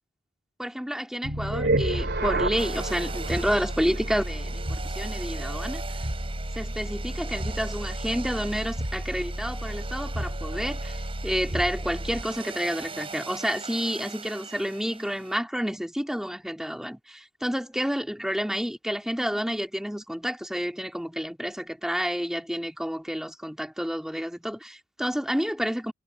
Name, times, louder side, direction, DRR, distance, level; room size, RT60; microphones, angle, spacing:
voice 1, 0.6-5.8 6.6-25.9, equal, ahead, 2.1 m, -30 dB
sound 1, 1.2-12.4, right 1 dB, 55° right, 3.6 m, -31 dB
Domestic sounds home sounds, 2.6-15.4, right 4 dB, 25° right, 7.6 m, -41 dB
head